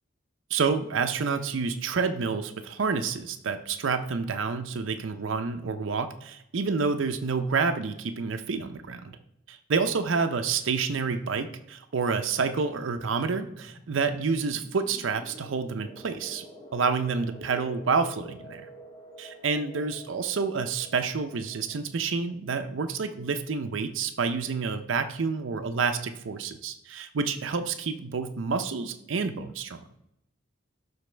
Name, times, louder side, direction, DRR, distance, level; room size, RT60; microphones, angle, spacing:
voice 1, 0.5-9.1 9.5-16.5 16.7-18.7 19.2-29.8, right 5 dB, 80° right, 7 dB, 0.5 m, -28 dB
sound 1, 12.8-23.3, right 1 dB, 25° left, 1.2 m, -49 dB
12.0 x 4.1 x 3.3 m, 0.78 s
head